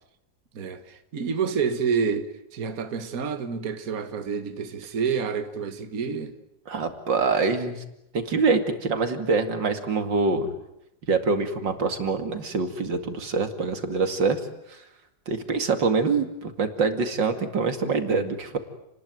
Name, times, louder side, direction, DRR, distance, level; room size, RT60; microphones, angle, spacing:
voice 1, 0.5-6.4, right 6 dB, 55° right, 1.9 m, -28 dB
voice 2, 6.7-7.8 8.1-10.5 11.1-14.4 15.3-18.6, right 4 dB, 85° right, 3.0 m, -25 dB
30.0 x 20.0 x 9.3 m
omnidirectional pair, 1.9 m